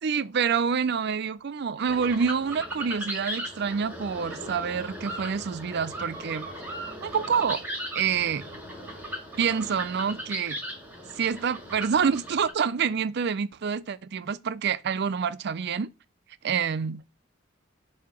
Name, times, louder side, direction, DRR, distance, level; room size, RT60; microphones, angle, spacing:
voice 1, 0.0-6.5 6.8-7.6 7.9-8.4 9.4-10.6 11.2-15.9 16.4-17.0, right 6 dB, 55° right, 0.4 m, -27 dB
sound 1, 1.9-12.5, equal, 10° right, 2.1 m, -38 dB
7.5 x 2.8 x 5.9 m
head